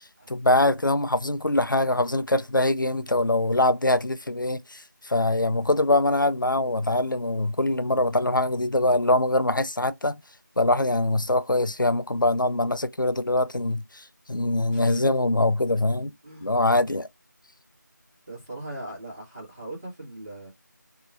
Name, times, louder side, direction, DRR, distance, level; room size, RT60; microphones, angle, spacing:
voice 1, 0.3-10.2 10.6-16.1 16.4-17.1, left 1 dB, 85° left, 0.6 m, -23 dB
voice 2, 14.6-15.0 16.2-16.5 18.3-20.5, right 1 dB, 10° right, 1.4 m, -40 dB
3.9 x 3.0 x 2.5 m
figure-of-eight pair, 175°, 10 cm